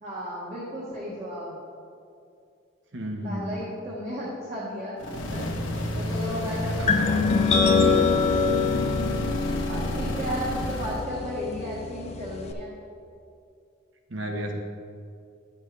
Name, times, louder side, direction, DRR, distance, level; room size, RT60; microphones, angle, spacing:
voice 1, 0.0-1.5 3.2-5.5 6.0-8.5 9.7-12.7, equal, 35° right, -6 dB, 1.2 m, -34 dB
voice 2, 2.9-3.6 6.4-7.8 9.9-10.4 14.1-14.5, equal, 70° right, 2 dB, 1.1 m, -35 dB
sound 1, 5.0-11.1, left 1 dB, 75° left, 1.0 m, -30 dB
sound 2, 6.9-12.5, left 5 dB, 35° left, 0.5 m, -25 dB
10.5 x 7.3 x 3.2 m, 2.4 s
head